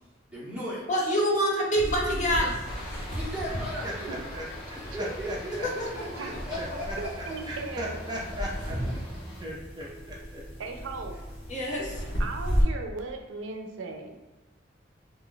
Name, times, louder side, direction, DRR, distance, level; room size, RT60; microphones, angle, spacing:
voice 1, 0.3-0.8 3.1-4.2 4.7-7.4, equal, 5° right, -9 dB, 0.9 m, -37 dB
voice 2, 0.9-2.6 11.5-12.0, equal, 40° left, -2 dB, 0.5 m, -26 dB
sound 1, 1.7-12.6, equal, 80° left, 0.9 m, -35 dB
Aircraft, 2.6-9.4, left 1 dB, 25° left, 1.2 m, -43 dB
voice 3, 3.8-5.7 6.2-6.3 6.6-9.1 9.4-10.4, equal, 20° right, -4 dB, 0.5 m, -39 dB
voice 4, 7.0-8.1 10.6-11.1 12.2-14.3, right 3 dB, 90° right, 4 dB, 0.4 m, -37 dB
2.5 x 2.2 x 3.7 m, 1.2 s
head